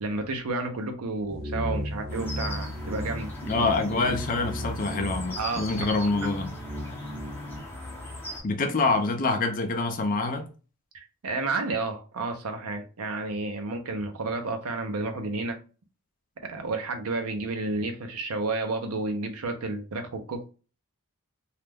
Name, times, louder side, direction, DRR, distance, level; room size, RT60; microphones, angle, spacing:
voice 1, 0.0-3.7 5.4-5.9 10.9-15.6 16.4-20.5, right 3 dB, 75° right, 0.6 m, -31 dB
sound 1, 1.3-7.6, equal, 45° right, 0.8 m, -35 dB
sound 2, 2.1-8.4, left 1 dB, 10° left, 0.8 m, -39 dB
voice 2, 3.5-6.5 8.4-10.5, left 3 dB, 40° left, 0.5 m, -26 dB
2.3 x 2.1 x 3.3 m
head